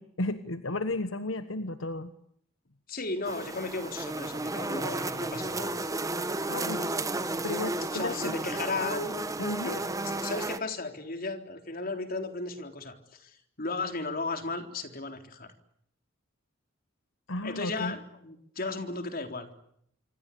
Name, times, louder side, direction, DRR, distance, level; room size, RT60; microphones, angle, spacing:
voice 1, 0.0-2.1 6.5-6.9 7.4-8.4 9.4-9.7 17.3-17.9, left 2 dB, 75° left, 10 dB, 1.4 m, -33 dB
voice 2, 2.9-5.8 7.9-9.2 9.7-15.5 17.4-19.5, left 3 dB, 45° left, 6 dB, 3.8 m, -35 dB
sound 1, 3.3-10.6, right 2 dB, 15° right, 1.3 m, -33 dB
26.5 x 26.0 x 8.6 m, 0.71 s
head